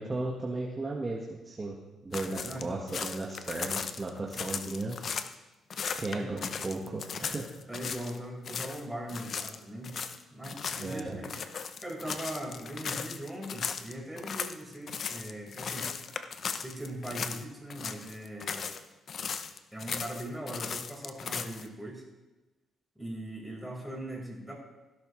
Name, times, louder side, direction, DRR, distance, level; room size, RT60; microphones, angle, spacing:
voice 1, 0.0-1.8 2.0-5.0 5.9-7.5 10.8-11.2, right 2 dB, 25° right, -2 dB, 1.6 m, -35 dB
sound 1, 2.1-5.3 5.7-8.2 8.4-8.8 9.1-17.4 17.7-18.8 19.1-21.7, left 6 dB, 55° left, 0.7 m, -37 dB
voice 2, 2.3-2.7 6.1-6.3 6.6-6.8 7.7-9.9 10.3-11.3 11.8-15.9 16.5-18.7 19.7-22.0 22.9-24.5, right 1 dB, 5° right, -3 dB, 4.8 m, -40 dB
16.0 x 11.5 x 3.3 m, 1.1 s
cardioid pair, 90°, 0 cm